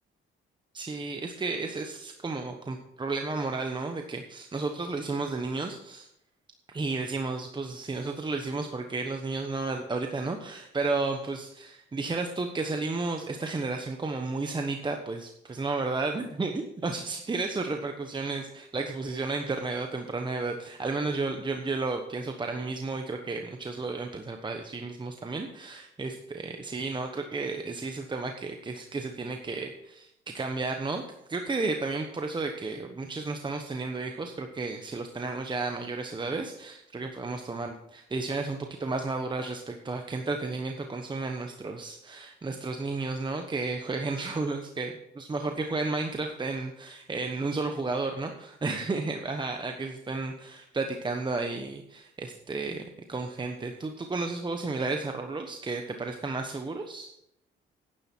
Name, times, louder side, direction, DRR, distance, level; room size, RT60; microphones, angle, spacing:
voice 1, 0.7-6.1 6.7-31.0 31.3-57.1, right 3 dB, 25° right, 4 dB, 1.1 m, -32 dB
10.5 x 10.5 x 4.5 m, 0.78 s
cardioid pair, 90°, 20 cm